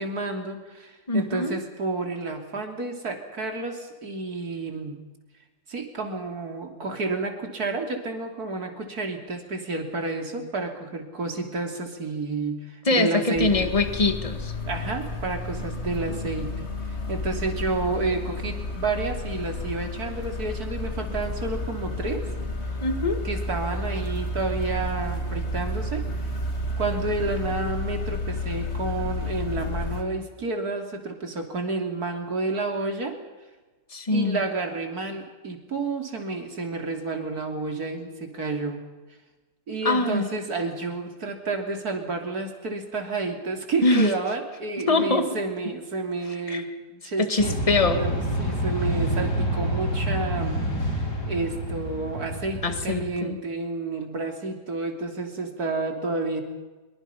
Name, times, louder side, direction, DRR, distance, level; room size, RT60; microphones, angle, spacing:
voice 1, 0.0-5.0 5.7-13.7 14.7-16.5 17.1-22.2 23.2-26.3 26.8-33.2 34.1-38.8 39.7-46.7 47.0-47.6 47.9-56.4, right 3 dB, 60° right, 4 dB, 3.5 m, -30 dB
voice 2, 1.1-1.5 12.9-14.5 22.8-23.2 33.9-34.4 39.8-40.3 43.8-44.1 44.9-45.3 46.5-46.7 47.2-48.0 52.6-53.4, left 2 dB, 20° left, 8 dB, 1.8 m, -23 dB
sound 1, 13.4-30.0, left 1 dB, 40° left, 2.5 m, -31 dB
sound 2, 47.4-53.0, equal, 70° left, 4.9 m, -28 dB
25.0 x 23.5 x 5.7 m, 1.2 s
omnidirectional pair, 1.8 m